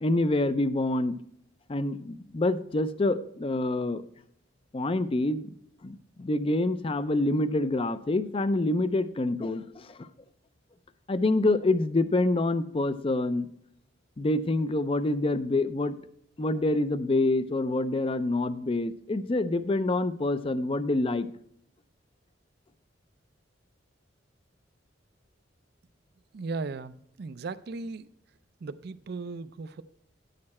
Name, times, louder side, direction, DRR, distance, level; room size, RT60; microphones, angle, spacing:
voice 1, 0.0-1.2 1.7-4.0 4.7-5.5 5.8-10.1 11.1-13.5 14.2-16.0 16.4-21.3, left 2 dB, 30° left, 0.4 m, -26 dB
voice 2, 26.3-28.1 28.6-29.8, right 3 dB, 55° right, 0.4 m, -37 dB
9.7 x 6.6 x 4.2 m
head